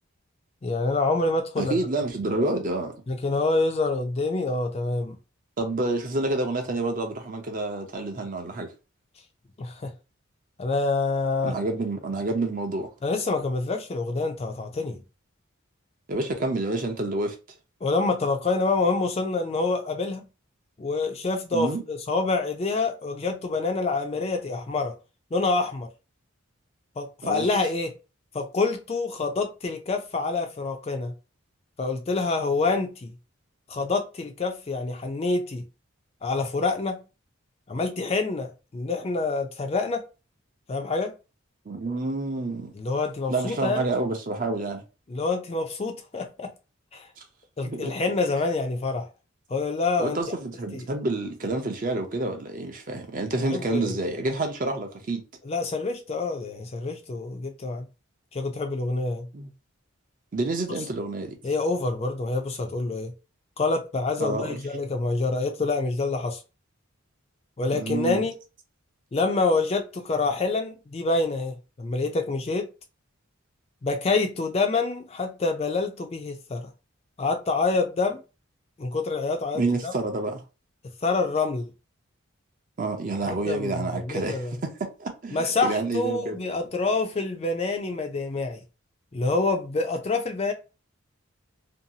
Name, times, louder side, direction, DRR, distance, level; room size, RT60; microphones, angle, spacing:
voice 1, 0.6-1.7 3.1-5.2 9.6-9.9 10.6-11.6 13.0-15.0 17.8-20.2 20.8-24.9 25.3-25.9 27.0-27.9 28.3-31.1 31.8-33.1 33.7-35.6 36.2-37.0 37.7-40.0 40.7-41.1 42.7-43.9 45.1-46.5 46.9-47.1 47.6-49.1 49.5-50.2 50.7-50.9 53.5-54.0 55.4-57.9 58.3-59.3 61.4-63.1 63.6-66.4 67.6-68.3 69.1-72.7 73.8-76.7 77.2-78.2 78.8-79.9 81.0-81.7 83.3-84.5 85.3-88.6 89.1-90.5, left 3 dB, 30° left, 0.3 m, -27 dB
voice 2, 1.6-2.9 5.6-8.7 11.4-12.9 16.1-17.3 21.5-21.8 27.2-27.5 41.7-42.7 43.3-44.8 47.2-47.3 47.7-47.9 50.0-55.2 59.3-59.5 60.3-61.4 64.2-64.6 67.7-68.2 79.5-80.4 82.8-86.4, right 2 dB, 40° right, 0.5 m, -28 dB
2.7 x 2.3 x 2.7 m
head